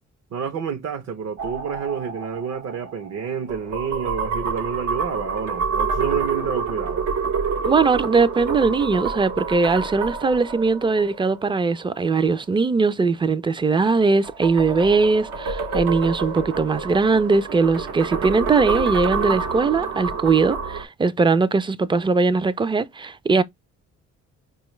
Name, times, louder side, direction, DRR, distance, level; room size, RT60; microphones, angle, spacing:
voice 1, 0.3-7.1, right 6 dB, 55° right, 0.6 m, -29 dB
sound 1, 1.4-12.0 14.0-20.8, right 5 dB, 90° right, 1.0 m, -28 dB
voice 2, 7.6-23.4, right 4 dB, 15° right, 0.3 m, -20 dB
4.9 x 2.3 x 3.0 m
cardioid pair, 90°, 30 cm